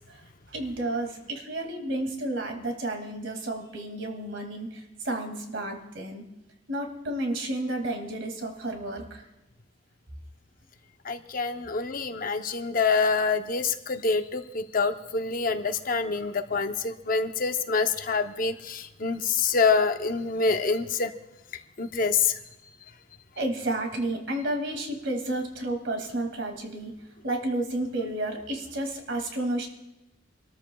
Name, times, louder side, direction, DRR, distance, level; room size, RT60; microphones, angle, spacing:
voice 1, 0.5-6.3 6.7-9.3 23.4-27.0 27.2-29.7, right 1 dB, 65° right, 4 dB, 2.3 m, -31 dB
voice 2, 11.0-21.1 21.8-22.4, left 4 dB, 45° left, 7 dB, 0.7 m, -26 dB
28.0 x 13.5 x 2.3 m, 0.92 s
head